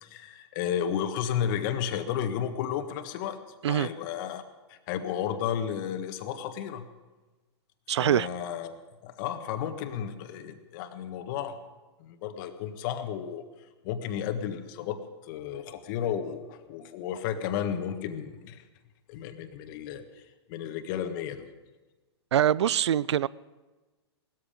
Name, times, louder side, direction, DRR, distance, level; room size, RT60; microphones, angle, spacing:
voice 1, 0.0-3.4 3.7-4.4 4.7-6.9 8.0-8.7 9.0-11.6 12.0-13.4 13.8-18.6 19.1-20.0 20.5-21.5, left 9 dB, 50° left, 1.5 m, -33 dB
voice 2, 7.9-8.3 22.3-23.3, right 10 dB, 75° right, 0.4 m, -24 dB
18.5 x 13.5 x 5.0 m
hypercardioid pair, 120°, 14 cm